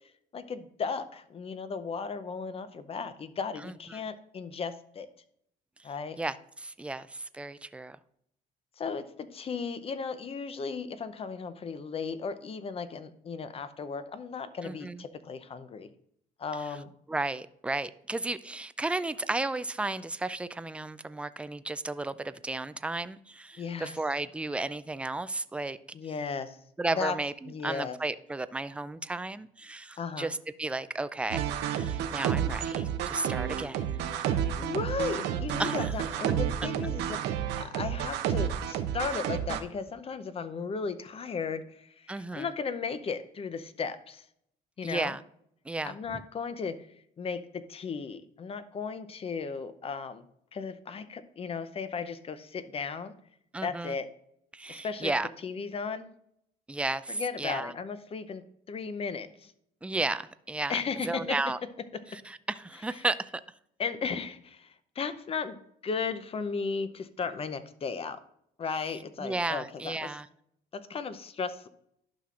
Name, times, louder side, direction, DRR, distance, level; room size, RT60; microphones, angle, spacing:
voice 1, 0.3-5.1 5.8-6.2 8.8-15.9 16.4-16.9 23.6-23.9 25.9-26.6 27.0-27.2 27.5-28.0 30.0-30.3 34.6-37.2 37.6-44.2 44.8-45.1 45.8-46.9 47.2-50.2 50.5-53.1 53.6-54.1 54.7-55.1 55.4-56.1 57.1-59.5 60.7-61.4 63.8-64.7 65.0-65.6 65.8-68.2 68.6-70.2 70.7-71.7, left 5 dB, 35° left, 12 dB, 0.6 m, -35 dB
voice 2, 3.6-4.0 6.2-8.0 14.6-15.0 16.6-16.8 17.1-25.8 26.8-31.4 31.7-33.8 34.1-34.2 35.6-35.9 42.1-42.5 44.8-45.2 45.7-46.2 53.5-53.9 54.5-55.3 56.7-57.7 59.8-61.6 62.1-63.3 69.2-70.3, right 2 dB, 5° right, 14 dB, 0.3 m, -34 dB
sound 1, 31.3-39.6, right 9 dB, 85° right, 0.7 m, -30 dB
11.5 x 5.9 x 2.5 m, 0.72 s
cardioid pair, 110°, 17 cm